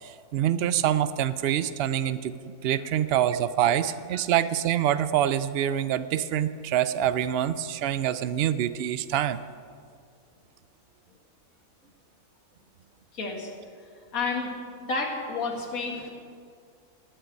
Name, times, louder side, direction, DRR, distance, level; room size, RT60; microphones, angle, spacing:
voice 1, 0.0-2.4 2.6-9.4, right 10 dB, 70° right, 14 dB, 0.6 m, -25 dB
voice 2, 13.1-13.5 14.1-14.5 14.9-16.1, left 4 dB, 70° left, 0 dB, 2.2 m, -30 dB
13.5 x 6.7 x 9.6 m, 2.1 s
omnidirectional pair, 1.5 m